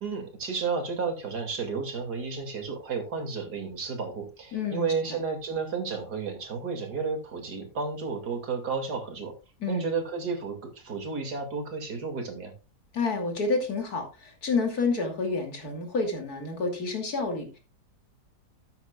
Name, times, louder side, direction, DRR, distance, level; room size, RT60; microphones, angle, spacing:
voice 1, 0.0-9.3 9.7-12.5, right 5 dB, 90° right, 4 dB, 3.0 m, -32 dB
voice 2, 4.5-4.9 9.6-9.9 12.9-17.6, left 3 dB, 70° left, 4 dB, 3.1 m, -29 dB
13.0 x 9.3 x 2.4 m, 0.29 s
omnidirectional pair, 1.7 m